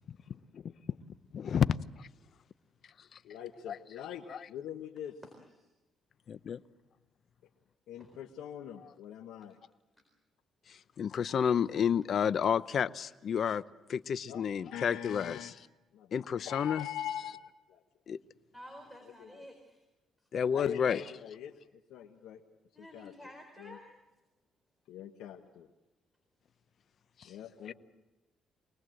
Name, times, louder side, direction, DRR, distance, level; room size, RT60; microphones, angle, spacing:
voice 1, 1.3-2.1 3.7-3.8 4.3-4.5 6.3-6.6 10.7-13.6 13.9-15.5 16.1-16.9 18.1-18.2 20.3-21.0 27.2-27.3 27.6-27.7, left 7 dB, 55° left, 16 dB, 0.7 m, -31 dB
voice 2, 3.2-5.1 7.9-9.6 14.3-15.5 15.9-17.8 19.2-19.4 20.5-21.5 21.9-22.4 22.9-23.1 23.6-23.8 24.9-25.7 27.2-27.7, left 10 dB, 90° left, 3 dB, 1.3 m, -43 dB
voice 3, 5.2-5.7 8.0-8.2 18.5-19.8 20.2-20.3 22.7-24.0, equal, 5° left, 3 dB, 4.3 m, -51 dB
24.5 x 19.5 x 7.8 m, 1.0 s
cardioid pair, 90°, 0 cm